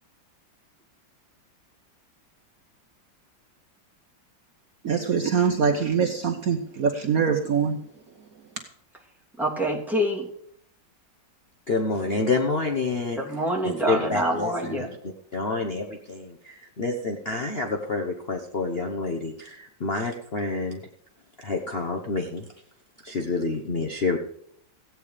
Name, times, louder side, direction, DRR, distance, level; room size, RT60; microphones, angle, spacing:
voice 1, 4.8-7.8, right 6 dB, 55° right, 5 dB, 1.2 m, -23 dB
voice 2, 9.4-10.3 13.1-14.9, right 1 dB, ahead, -3 dB, 3.0 m, -26 dB
voice 3, 11.7-13.2 13.6-14.9 15.3-20.8 21.4-22.5 23.0-24.2, left 3 dB, 40° left, 2 dB, 1.1 m, -28 dB
15.5 x 9.1 x 5.1 m, 0.70 s
omnidirectional pair, 2.0 m